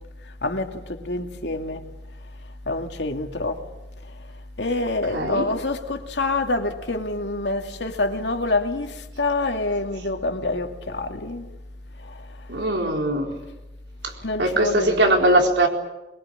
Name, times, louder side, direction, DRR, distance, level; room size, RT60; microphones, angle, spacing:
voice 1, 0.4-1.9 2.7-3.6 4.6-11.5 14.2-15.2, left 2 dB, 75° left, 2.4 m, -26 dB
voice 2, 5.1-5.4 12.5-13.3 14.0-14.1 14.4-15.7, right 1 dB, 80° right, 4.2 m, -20 dB
23.0 x 23.0 x 8.7 m
head